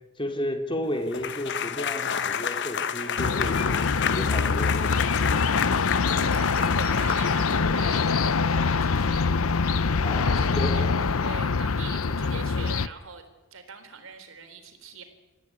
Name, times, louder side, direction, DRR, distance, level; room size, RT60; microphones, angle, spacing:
voice 1, 0.2-4.9 10.0-10.8, left 1 dB, 25° left, 4 dB, 2.9 m, -32 dB
sound 1, 1.1-7.9, left 7 dB, 55° left, 1.2 m, -30 dB
sound 2, 3.2-12.9, left 4 dB, 80° left, 0.7 m, -24 dB
voice 2, 6.0-13.2 13.5-15.0, right 4 dB, 70° right, 6 dB, 4.0 m, -41 dB
26.0 x 15.0 x 9.6 m, 1.2 s
head